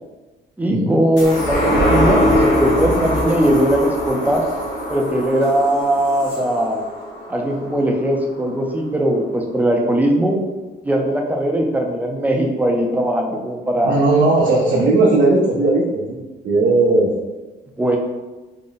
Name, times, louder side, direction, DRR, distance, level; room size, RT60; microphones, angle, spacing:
voice 1, 0.6-4.4 4.9-6.8 7.3-10.4 10.8-14.0 17.8-18.0, right 1 dB, 10° right, 1 dB, 0.5 m, -19 dB
sound 1, 1.2-8.0 8.4-8.5, equal, 85° left, 1.3 m, -21 dB
voice 2, 13.8-17.1, right 2 dB, 70° right, -5 dB, 0.7 m, -17 dB
3.8 x 2.1 x 3.9 m, 1.2 s
cardioid pair, 110°, 18 cm